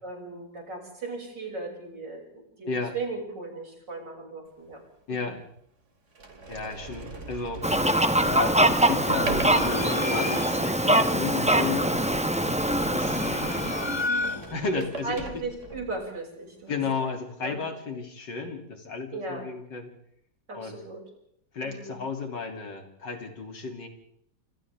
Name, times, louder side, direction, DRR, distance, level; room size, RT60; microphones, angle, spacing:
voice 1, 0.0-2.2 2.6-4.8 5.1-5.3 7.6-7.8 15.0-17.1 17.4-17.6 19.1-19.5 20.5-21.0 21.6-22.0, right 3 dB, 85° right, 0 dB, 7.2 m, -37 dB
Sliding door, 4.7-4.8 5.6-5.7 6.1-16.0, right 3 dB, 45° right, 2.6 m, -40 dB
voice 2, 5.1-5.4 6.5-7.6 8.2-12.0 12.9-13.3 13.6-13.9 14.5-15.4 16.7-19.9 20.5-20.8 21.5-23.9, left 4 dB, 90° left, 3 dB, 3.5 m, -33 dB
Fowl, 7.6-14.1, right 1 dB, 5° right, 0.7 m, -24 dB
sound 1, 9.2-10.8 12.7-14.7, left 3 dB, 30° left, 0.5 m, -32 dB
27.0 x 26.5 x 3.6 m, 0.72 s
omnidirectional pair, 1.9 m